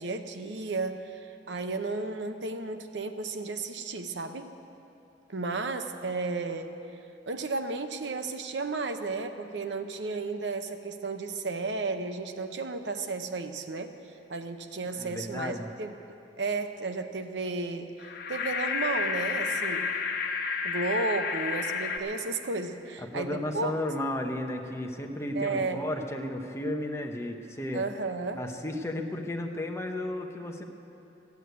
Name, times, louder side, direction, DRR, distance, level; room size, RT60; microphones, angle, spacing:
voice 1, 0.0-4.5 5.3-6.7 7.3-13.9 14.3-15.9 16.4-17.9 18.3-19.9 20.6-23.7 25.3-25.8 27.7-28.4, right 3 dB, 80° right, 8 dB, 0.8 m, -33 dB
voice 2, 14.9-15.7 23.1-27.8 28.4-30.6, left 1 dB, 15° left, 3 dB, 0.9 m, -33 dB
sound 1, 18.0-22.0, left 5 dB, 55° left, 1.2 m, -31 dB
14.5 x 8.2 x 9.3 m, 2.8 s
head